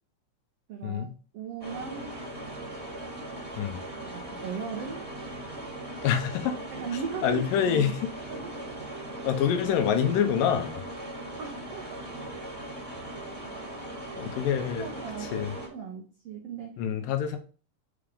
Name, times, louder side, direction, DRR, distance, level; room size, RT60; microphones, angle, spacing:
voice 1, 0.7-2.1 4.0-5.1 6.7-7.9 8.3-8.9 11.4-12.1 14.2-14.5 14.8-15.4 15.7-16.8, right 6 dB, 85° right, 2 dB, 1.3 m, -38 dB
sound 1, 1.6-15.7, right 1 dB, 15° right, 1.0 m, -39 dB
voice 2, 6.0-6.6 7.2-8.1 9.2-10.8 14.2-14.9 15.2-15.5 16.8-17.4, left 8 dB, 85° left, 6 dB, 2.5 m, -26 dB
6.0 x 3.5 x 5.1 m, 0.38 s
omnidirectional pair, 3.9 m